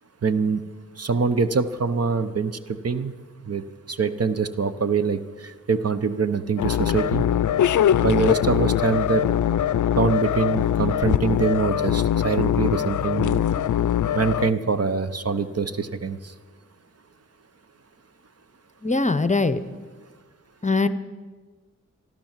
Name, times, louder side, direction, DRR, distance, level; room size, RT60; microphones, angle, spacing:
voice 1, 0.2-0.6 1.0-2.6 2.8-3.1 3.4-7.2 8.0-9.2 10.0-13.4 14.1-16.3, right 5 dB, 50° right, 11 dB, 0.8 m, -24 dB
sound 1, 6.6-14.5, left 10 dB, 75° left, 0.5 m, -22 dB
voice 2, 18.8-19.6 20.6-20.9, left 3 dB, 25° left, 13 dB, 0.7 m, -21 dB
15.0 x 12.0 x 7.4 m, 1.4 s
wide cardioid pair, 75°, 31 cm